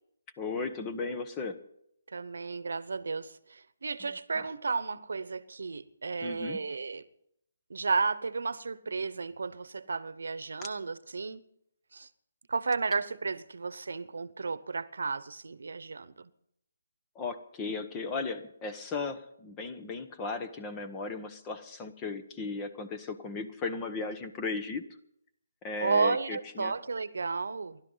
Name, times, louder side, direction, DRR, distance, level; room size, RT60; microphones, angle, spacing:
voice 1, 0.4-1.6 4.3-4.4 6.2-6.6 17.1-24.8 25.6-26.8, left 3 dB, 15° left, 1.1 m, -36 dB
voice 2, 2.1-7.0 7.7-11.4 11.9-12.1 12.5-16.1 25.8-27.8, right 4 dB, 80° right, 1.0 m, -33 dB
28.0 x 12.0 x 4.0 m
hypercardioid pair, 165°, 0 cm